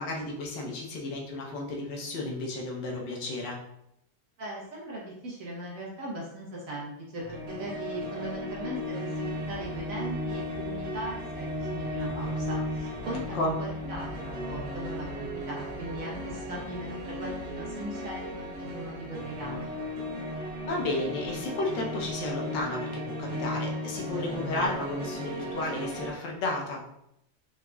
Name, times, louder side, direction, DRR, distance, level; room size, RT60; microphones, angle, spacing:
voice 1, 0.0-3.6 13.3-13.5 20.6-26.8, left 2 dB, 85° left, -1 dB, 1.5 m, -33 dB
voice 2, 4.4-9.1 9.5-19.7, right 1 dB, 55° right, -4 dB, 1.4 m, -39 dB
sound 1, 7.2-26.1, equal, 75° right, 1.5 m, -35 dB
sound 2, 9.2-22.1, left 4 dB, 10° right, 1.0 m, -47 dB
4.5 x 3.7 x 2.3 m, 0.79 s
omnidirectional pair, 1.9 m